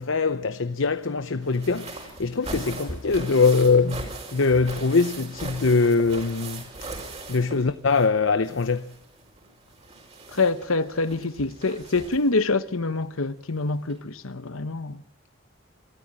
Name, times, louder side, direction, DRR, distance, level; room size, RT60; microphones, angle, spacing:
voice 1, 0.0-6.7 7.3-8.9, left 4 dB, 70° left, 0.8 m, -22 dB
sound 1, 1.4-8.2 8.4-12.4 13.5-13.6 13.9-14.0, right 2 dB, 30° right, 5.6 m, -39 dB
voice 2, 10.3-15.0, left 3 dB, 85° left, 1.2 m, -26 dB
26.5 x 14.0 x 9.0 m
head